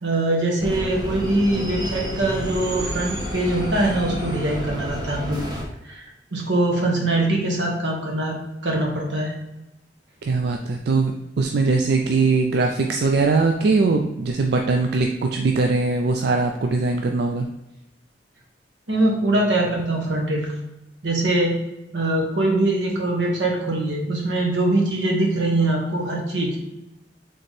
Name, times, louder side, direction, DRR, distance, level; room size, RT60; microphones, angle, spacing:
voice 1, 0.0-5.4 5.9-6.0 6.3-8.3 8.6-9.4 18.9-20.5 21.0-21.6 21.9-26.6, right 2 dB, 85° right, 0 dB, 1.2 m, -22 dB
sound 1, 0.6-5.6, equal, 25° right, 0.9 m, -30 dB
voice 2, 10.2-17.5, right 3 dB, 65° right, 3 dB, 0.4 m, -21 dB
4.2 x 3.8 x 3.2 m, 0.94 s
head